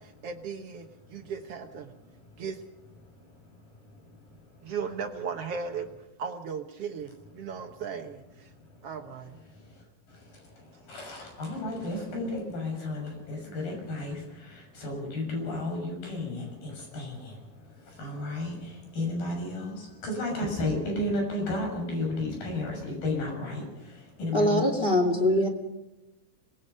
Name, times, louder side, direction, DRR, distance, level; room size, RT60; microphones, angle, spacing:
voice 1, 0.0-1.9 2.4-2.6 4.6-8.5 8.8-9.4, right 6 dB, 70° right, 6 dB, 1.4 m, -37 dB
voice 2, 10.9-14.2 14.8-17.3 18.0-18.6 18.9-19.8 20.0-23.6 24.2-24.7, left 2 dB, 70° left, 2 dB, 8.1 m, -32 dB
voice 3, 24.3-25.5, left 1 dB, 20° left, 3 dB, 2.0 m, -23 dB
26.5 x 20.0 x 5.5 m, 0.96 s
omnidirectional pair, 4.2 m